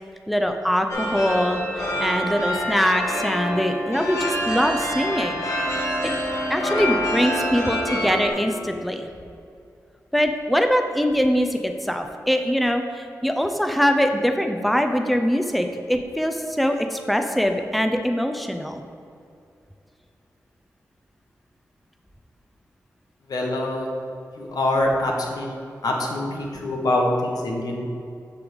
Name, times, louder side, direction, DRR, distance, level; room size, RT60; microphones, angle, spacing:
voice 1, 0.3-5.4 5.8-6.1 6.5-9.1 10.1-18.8, equal, ahead, 6 dB, 0.6 m, -23 dB
sound 1, 0.9-8.3, equal, 55° left, 1.5 m, -26 dB
voice 2, 23.3-23.9 24.4-25.6 25.8-27.8, left 1 dB, 85° left, 0 dB, 1.0 m, -24 dB
8.5 x 3.4 x 6.3 m, 2.5 s
cardioid pair, 55°, 6 cm